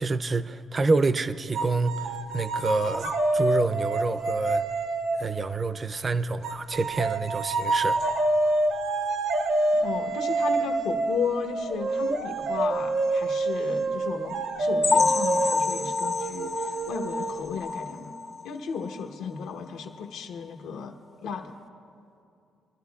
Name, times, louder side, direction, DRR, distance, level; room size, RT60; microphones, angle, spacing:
voice 1, 0.0-4.6 5.2-8.0, right 3 dB, 35° right, 0.4 m, -27 dB
sound 1, 1.5-5.5 6.4-17.7, right 2 dB, 75° right, 0.8 m, -27 dB
voice 2, 9.7-18.2 18.4-21.0 21.2-21.5, left 5 dB, 90° left, 1.0 m, -34 dB
sound 2, 14.8-18.5 18.8-19.0 19.4-19.5 19.9-20.0, left 4 dB, 35° left, 0.4 m, -27 dB
24.0 x 12.5 x 2.3 m
cardioid pair, 90°, 0 cm